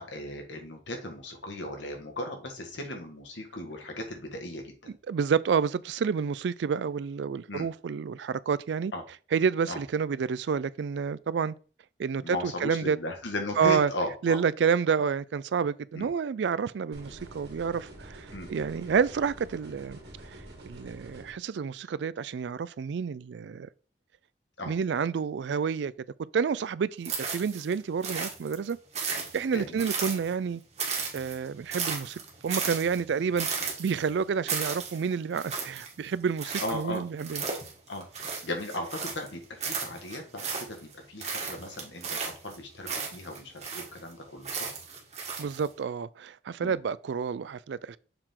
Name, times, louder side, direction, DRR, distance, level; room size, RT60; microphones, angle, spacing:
voice 1, 0.0-5.0 7.5-7.7 8.9-9.0 9.7-9.8 12.2-14.4 15.9-16.1 18.3-18.5 24.6-24.7 29.5-29.8 36.6-37.0 37.9-38.0 38.4-44.7 46.6-46.8, left 1 dB, 90° left, 1.7 m, -36 dB
voice 2, 5.1-8.9 9.3-11.6 12.0-13.0 13.6-13.9 14.2-20.0 20.3-23.7 24.7-25.9 26.3-28.8 29.1-30.6 31.1-33.5 33.8-37.4 45.4-48.0, right 6 dB, 75° right, 0.3 m, -29 dB
sound 1, 16.9-21.3, right 1 dB, 60° right, 2.0 m, -47 dB
sound 2, 27.0-27.7 28.0-30.5 30.8-39.3 39.6-40.9 41.2-44.1 44.4-45.7, right 5 dB, 35° right, 1.6 m, -35 dB
6.8 x 3.8 x 4.4 m
head